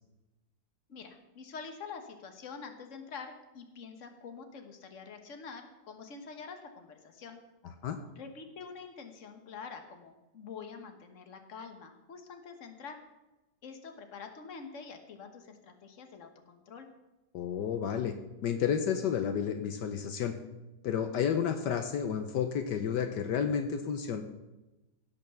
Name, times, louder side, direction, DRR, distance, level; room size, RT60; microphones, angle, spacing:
voice 1, 0.9-7.4 8.1-13.0 13.6-16.9, left 5 dB, 45° left, 6 dB, 1.6 m, -46 dB
voice 2, 17.3-18.2 18.4-20.4 20.8-24.2, left 8 dB, 75° left, 7 dB, 1.4 m, -31 dB
17.0 x 5.6 x 7.0 m, 1.0 s
omnidirectional pair, 1.9 m